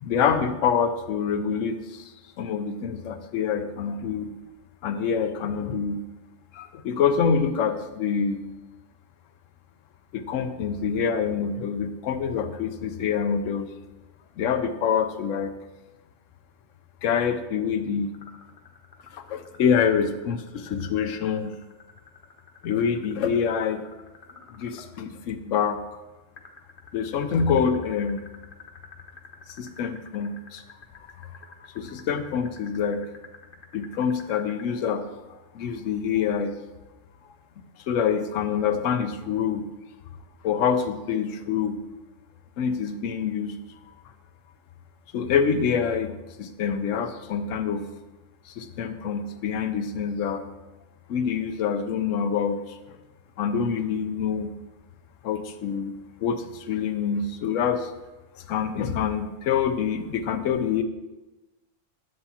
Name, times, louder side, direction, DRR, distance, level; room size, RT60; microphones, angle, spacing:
voice 1, 0.0-2.0 2.4-4.3 4.8-6.0 6.5-8.4 10.1-13.7 14.4-15.5 17.0-18.1 19.2-21.5 22.6-23.8 24.5-25.8 26.9-28.2 29.6-30.6 31.7-33.0 33.7-35.0 35.5-36.6 37.9-39.6 40.4-41.8 42.6-43.6 45.1-46.1 46.4-47.9 48.6-50.4 51.1-52.6 53.4-54.5 55.2-55.9 56.2-57.9 58.5-60.8, left 7 dB, 80° left, 9 dB, 1.0 m, -26 dB
sound 1, 18.1-24.9 26.4-34.6, left 4 dB, 50° left, 0.9 m, -48 dB
9.4 x 6.8 x 2.8 m, 1.1 s
omnidirectional pair, 1.3 m